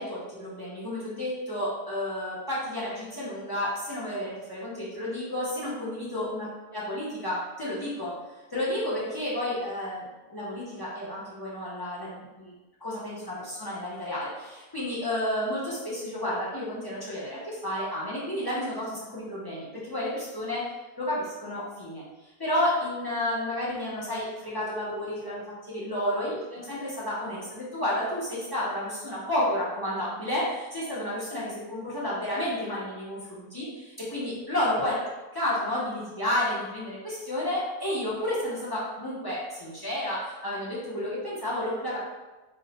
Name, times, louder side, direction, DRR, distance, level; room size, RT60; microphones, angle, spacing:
voice 1, 0.0-8.1 8.5-12.5 12.8-20.6 21.0-35.0 35.3-42.0, left 1 dB, 40° left, -9 dB, 0.3 m, -31 dB
3.0 x 2.1 x 3.9 m, 1.2 s
omnidirectional pair, 1.6 m